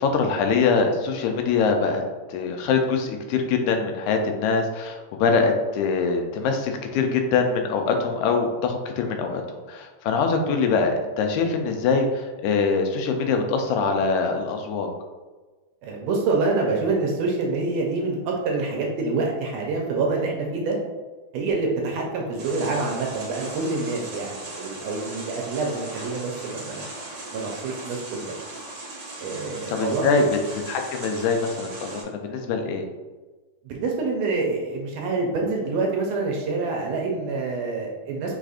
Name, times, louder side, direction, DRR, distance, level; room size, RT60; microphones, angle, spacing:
voice 1, 0.0-2.0 2.3-14.9 29.5-30.4 30.7-32.9, left 4 dB, 85° left, 4 dB, 2.0 m, -23 dB
voice 2, 15.8-20.8 21.3-26.9 27.3-28.3 29.2-30.3 33.6-38.4, right 3 dB, 75° right, 0 dB, 1.7 m, -26 dB
sound 1, 22.4-32.0, right 2 dB, 55° right, 1.3 m, -38 dB
4.8 x 4.0 x 2.4 m, 1.2 s
omnidirectional pair, 3.4 m